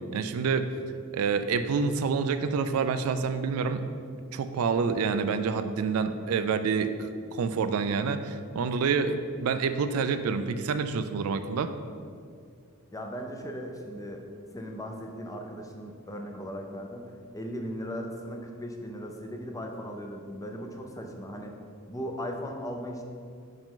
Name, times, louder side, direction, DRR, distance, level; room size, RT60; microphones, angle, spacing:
voice 1, 0.1-0.7 1.1-3.8 4.3-11.7, right 5 dB, 85° right, 10 dB, 0.4 m, -27 dB
voice 2, 12.9-14.3 14.5-21.5 21.9-23.0, equal, 15° left, 3 dB, 0.5 m, -38 dB
5.2 x 4.9 x 3.7 m, 2.2 s
head